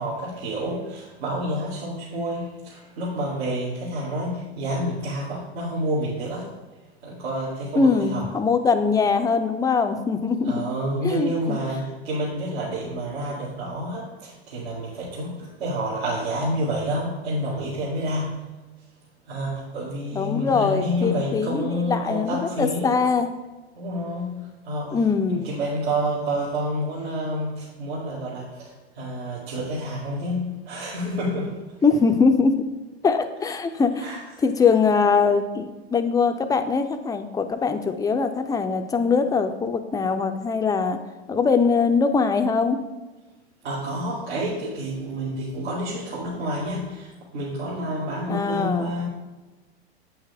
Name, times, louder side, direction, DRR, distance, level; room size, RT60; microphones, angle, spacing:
voice 1, 0.0-6.5 7.0-8.3 10.4-18.4 19.3-23.0 23.7-25.0 25.3-31.6 34.0-34.2 43.6-49.1, equal, 75° right, -8 dB, 2.2 m, -29 dB
voice 2, 7.8-10.6 11.0-11.6 20.1-23.3 24.9-25.5 31.8-32.6 33.0-34.1 34.4-41.0 41.3-42.8 48.3-48.9, left 5 dB, 10° left, 7 dB, 0.5 m, -22 dB
8.2 x 5.8 x 3.5 m, 1.2 s
hypercardioid pair, 105°, 32 cm